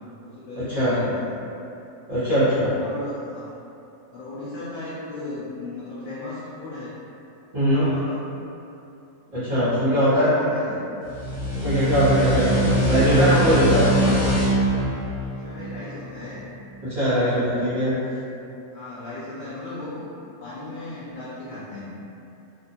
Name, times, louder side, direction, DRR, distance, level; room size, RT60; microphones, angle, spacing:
voice 1, 0.2-1.3 2.7-3.5 4.1-7.0 7.6-8.3 10.0-10.9 12.1-14.3 15.4-16.5 17.8-18.2 18.7-20.1 20.4-21.9, left 2 dB, 80° left, -9 dB, 0.4 m, -36 dB
voice 2, 2.1-2.7 7.5-7.9 9.3-10.3 11.5-13.8 16.9-17.9, equal, 40° right, -17 dB, 0.9 m, -21 dB
sound 1, 11.0-16.4, right 1 dB, 65° left, 1.1 m, -23 dB
2.7 x 2.1 x 2.6 m, 2.8 s
omnidirectional pair, 1.4 m